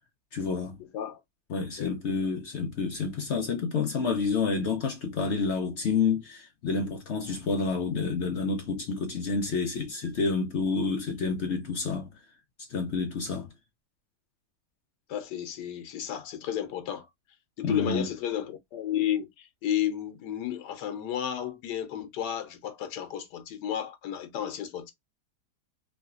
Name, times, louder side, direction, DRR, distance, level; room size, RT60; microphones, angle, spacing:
voice 1, 0.3-0.8 1.5-12.1 12.7-13.5 17.6-18.0, left 4 dB, 60° left, 0.7 m, -29 dB
voice 2, 15.1-17.1 17.6-24.9, left 10 dB, 85° left, 1.3 m, -32 dB
3.2 x 2.8 x 2.4 m
omnidirectional pair, 1.8 m